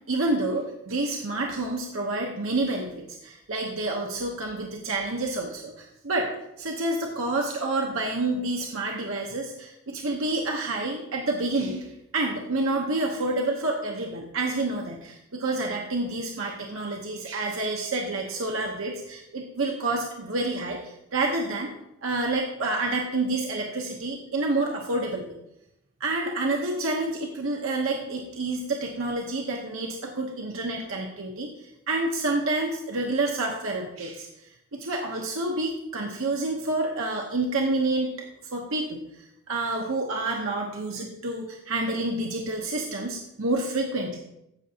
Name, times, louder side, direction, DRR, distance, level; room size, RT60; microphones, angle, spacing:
voice 1, 0.1-6.3 6.6-11.9 12.1-21.7 22.0-25.3 26.0-31.5 31.9-34.3 34.7-38.1 38.5-39.0 39.5-44.2, right 2 dB, 65° right, 0 dB, 0.9 m, -28 dB
15.0 x 5.9 x 2.8 m, 0.83 s
head